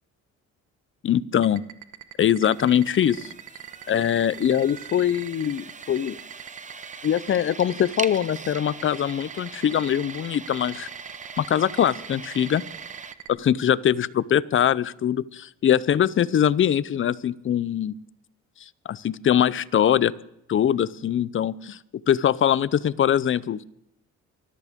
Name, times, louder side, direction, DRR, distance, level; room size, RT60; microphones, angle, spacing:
voice 1, 1.0-1.6 2.2-3.3 3.9-6.2 7.0-10.9 11.4-12.6 13.3-18.0 18.9-20.1 20.5-21.8 22.1-23.6, left 9 dB, 40° left, 20 dB, 0.6 m, -22 dB
sound 1, 1.3-13.3, right 12 dB, 75° right, 1.3 m, -40 dB
sound 2, 2.4-13.1, right 5 dB, 25° right, 0.8 m, -41 dB
24.0 x 13.5 x 3.6 m, 0.81 s
cardioid pair, 90°, 30 cm